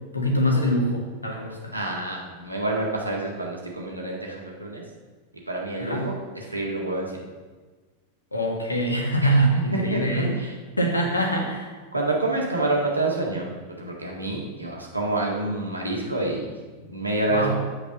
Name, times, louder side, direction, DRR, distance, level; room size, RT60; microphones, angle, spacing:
voice 1, 0.1-1.7 5.8-6.1 8.3-10.4 10.8-11.7 17.3-17.5, right 1 dB, 80° left, 1 dB, 1.6 m, -24 dB
voice 2, 1.7-4.8 5.3-7.3 9.2-10.5 11.9-16.5 16.9-17.5, right 2 dB, 85° right, -2 dB, 1.8 m, -28 dB
8.2 x 5.3 x 6.4 m, 1.4 s
figure-of-eight pair, 90°, 0 cm